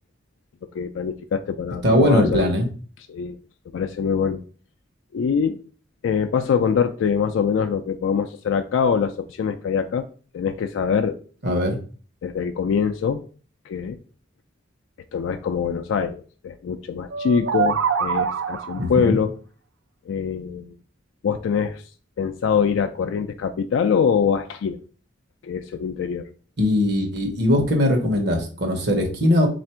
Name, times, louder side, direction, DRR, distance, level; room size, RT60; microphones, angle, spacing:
voice 1, 0.7-2.5 3.1-3.4 3.7-4.4 5.1-5.6 6.0-10.1 10.3-11.2 12.2-13.2 13.7-14.0 15.1-19.3 20.1-20.7 21.2-21.8 22.2-24.8 25.4-26.2, left 6 dB, 75° left, 7 dB, 0.3 m, -23 dB
voice 2, 1.8-2.7 11.4-11.8 18.8-19.2 26.6-29.5, left 1 dB, 60° right, 3 dB, 0.9 m, -20 dB
sound 1, 17.1-18.9, right 6 dB, 75° right, 0.4 m, -24 dB
3.5 x 2.5 x 4.3 m, 0.40 s
head